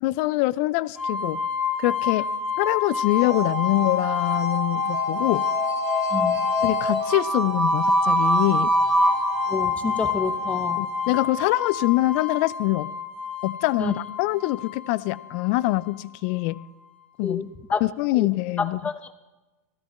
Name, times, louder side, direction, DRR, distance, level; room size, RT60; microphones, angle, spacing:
voice 1, 0.0-1.4 1.8-2.3 2.6-5.5 6.6-8.7 10.8-12.9 13.4-16.6 17.2-17.4 17.8-18.8, left 19 dB, 50° left, 18 dB, 0.5 m, -24 dB
sound 1, 1.0-15.9, left 2 dB, 10° right, 3.0 m, -25 dB
voice 2, 6.1-6.4 9.5-10.8 13.8-13.9 17.2-17.8 18.2-18.3 18.6-19.1, left 5 dB, 15° left, 9 dB, 1.1 m, -28 dB
15.0 x 13.5 x 4.4 m, 1.1 s
hypercardioid pair, 110°, 9 cm